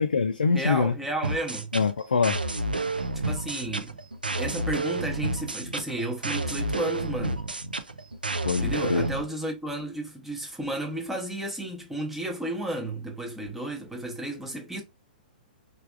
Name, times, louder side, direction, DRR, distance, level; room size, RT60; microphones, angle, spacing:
voice 1, 0.0-0.9 1.7-2.4 8.4-9.1, left 5 dB, 75° left, 0.4 m, -24 dB
voice 2, 0.5-1.7 3.1-4.0 4.4-7.5 8.6-14.8, right 1 dB, 5° right, 0.7 m, -33 dB
sound 1, 1.2-9.2, right 2 dB, 90° right, 0.4 m, -30 dB
3.3 x 2.4 x 2.4 m
figure-of-eight pair, 110°, 5 cm